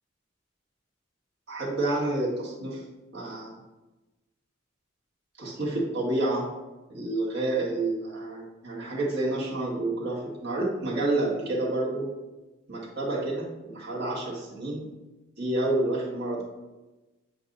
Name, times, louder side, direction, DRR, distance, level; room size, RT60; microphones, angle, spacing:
voice 1, 1.5-2.9 3.1-3.6 5.4-6.5 6.9-12.1 12.7-14.9 15.4-16.4, right 2 dB, 55° right, -5 dB, 1.8 m, -29 dB
8.1 x 2.7 x 5.3 m, 1.1 s
head